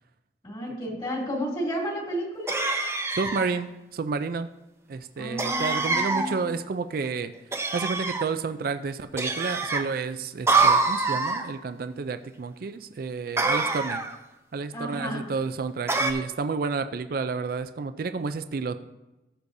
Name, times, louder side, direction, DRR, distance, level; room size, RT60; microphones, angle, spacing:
voice 1, 0.4-2.6 5.2-6.4 14.7-15.3, equal, 30° left, -4 dB, 2.7 m, -32 dB
sound 1, 2.5-3.5 5.4-6.3 7.5-8.3 9.2-9.8 10.5-11.4 13.4-14.2 15.9-16.1, right 3 dB, 15° right, 0.6 m, -25 dB
voice 2, 3.2-4.5 4.9-7.3 7.7-14.0 14.5-18.8, right 4 dB, 55° right, 10 dB, 0.4 m, -30 dB
14.5 x 6.8 x 2.6 m, 1.0 s
head